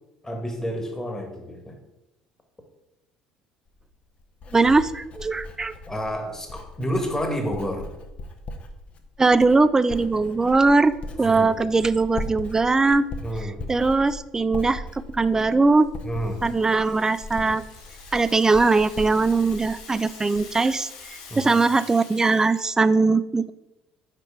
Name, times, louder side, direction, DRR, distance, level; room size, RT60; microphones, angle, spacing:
voice 1, 0.2-1.8 5.9-7.9 11.2-11.5 13.2-13.6 16.0-16.4 21.3-21.5, equal, 15° left, 4 dB, 1.4 m, -29 dB
Writing, 3.7-20.7 21.0-21.5, left 2 dB, 45° left, 0.8 m, -39 dB
voice 2, 4.5-5.7 9.2-10.9 11.2-13.0 13.7-14.8 15.1-15.9 16.4-17.6 18.1-20.9 21.4-23.5, right 3 dB, 20° right, 15 dB, 0.3 m, -20 dB
Rattle (instrument), 15.8-22.7, left 4 dB, 75° left, 1.2 m, -45 dB
4.8 x 4.4 x 4.7 m, 0.96 s
hypercardioid pair, 60°, 3 cm